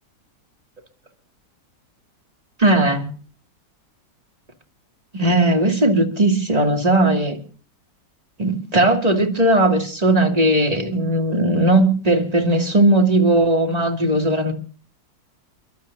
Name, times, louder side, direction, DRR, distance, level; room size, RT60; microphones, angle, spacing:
voice 1, 2.6-3.1 5.1-7.4 8.4-14.5, right 1 dB, 20° right, 2.5 m, -18 dB
30.0 x 12.5 x 2.7 m
omnidirectional pair, 2.0 m